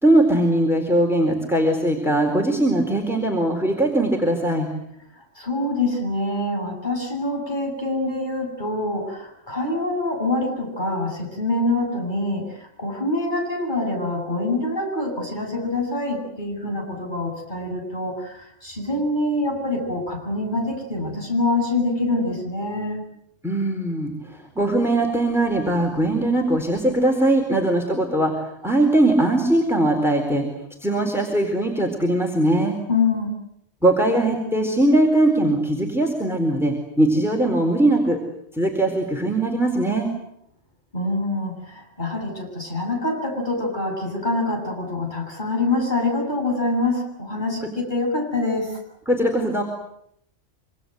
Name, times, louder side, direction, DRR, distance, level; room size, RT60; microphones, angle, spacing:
voice 1, 0.0-4.7 23.4-28.3 28.6-30.4 30.8-32.8 33.8-38.2 38.5-40.1 49.1-49.6, right 1 dB, ahead, 1 dB, 4.2 m, -20 dB
voice 2, 5.1-23.0 32.9-33.3 40.9-48.8, left 2 dB, 40° left, 1 dB, 8.3 m, -25 dB
26.5 x 25.5 x 8.0 m, 0.73 s
omnidirectional pair, 1.2 m